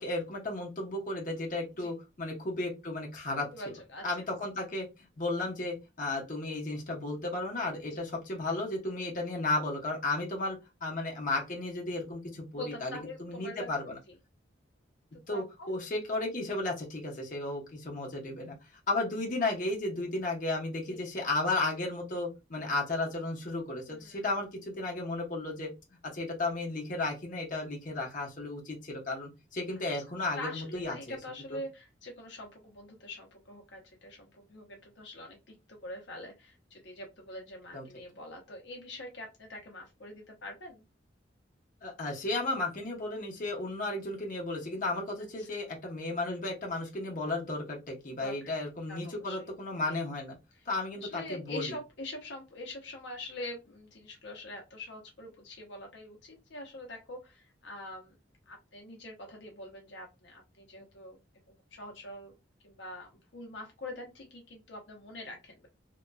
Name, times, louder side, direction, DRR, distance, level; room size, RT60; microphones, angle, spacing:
voice 1, 0.0-3.5 4.0-4.9 5.2-14.0 15.3-18.6 18.9-25.7 26.1-31.2 31.5-31.6 37.7-37.8 41.8-50.4 50.7-51.7, left 2 dB, 45° left, -1 dB, 0.9 m, -34 dB
voice 2, 3.4-4.0 7.9-8.0 12.5-13.7 14.1-14.2 15.1-15.8 20.9-21.0 23.7-24.2 28.0-28.1 30.4-40.8 45.4-45.7 48.1-48.3 48.9-49.5 49.9-50.0 50.5-50.7 51.0-58.2 58.5-61.2 61.7-62.3 62.6-65.7, left 1 dB, 70° left, 1 dB, 0.7 m, -44 dB
2.9 x 2.6 x 2.2 m, 0.25 s
head